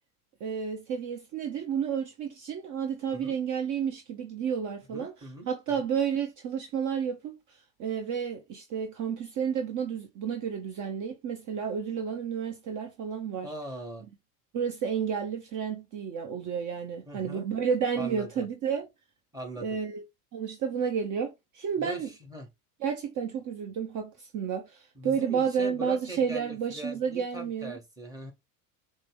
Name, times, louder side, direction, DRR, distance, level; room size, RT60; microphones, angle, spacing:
voice 1, 0.4-13.5 14.5-18.9 19.6-20.0 20.3-22.1 22.8-27.8, right 7 dB, 40° right, 0.8 m, -31 dB
voice 2, 4.9-5.5 13.4-14.0 17.1-17.5 17.9-18.4 19.3-19.8 21.8-22.5 24.9-28.3, right 1 dB, 10° right, 1.5 m, -41 dB
5.0 x 2.1 x 3.3 m
hypercardioid pair, 85°, 46 cm